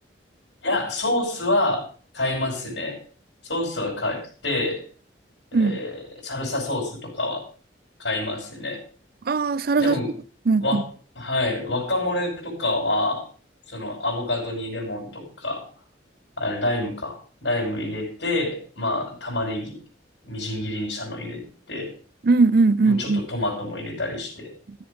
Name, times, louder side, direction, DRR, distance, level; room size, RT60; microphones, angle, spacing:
voice 1, 0.6-1.9 2.1-3.0 3.4-4.8 5.5-7.4 8.0-8.8 9.8-10.1 10.6-10.9 11.2-13.3 13.7-15.6 16.4-19.8 20.2-21.9 22.8-24.5, left 2 dB, 80° left, 5.5 m, -27 dB
voice 2, 9.3-9.9 10.5-10.8 22.2-23.2, right 3 dB, 55° right, 0.5 m, -19 dB
14.0 x 7.9 x 5.3 m
head